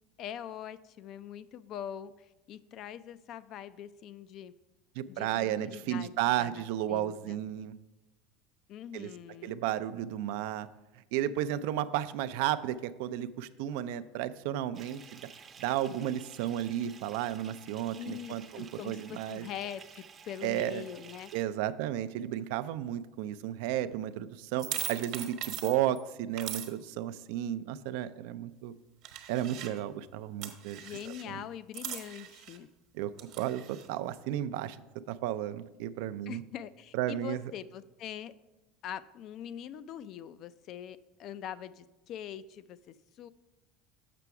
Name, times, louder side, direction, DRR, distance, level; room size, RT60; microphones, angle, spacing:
voice 1, 0.2-4.5 5.1-6.1 6.4-6.6 6.9-7.4 8.7-9.6 17.9-21.3 30.8-32.7 36.3-38.3 38.8-43.3, left 10 dB, 50° left, 15 dB, 0.3 m, -43 dB
voice 2, 5.0-7.8 8.9-9.1 9.4-10.7 11.1-15.2 15.6-19.5 20.4-20.8 21.3-28.7 29.3-30.8 31.3-31.4 32.9-33.1 33.4-34.8 35.1-36.4 36.9-37.4, right 12 dB, 75° right, 13 dB, 0.3 m, -33 dB
Bathtub (filling or washing) / Fill (with liquid), 14.7-21.4, right 6 dB, 30° right, 0.6 m, -52 dB
sound 1, 24.6-26.0 26.4-26.7 29.0-29.8 30.4-31.2 31.7-32.6 33.2-33.9, right 11 dB, 60° right, 1.0 m, -40 dB
6.7 x 6.0 x 4.7 m, 1.0 s
supercardioid pair, 125°, 0 cm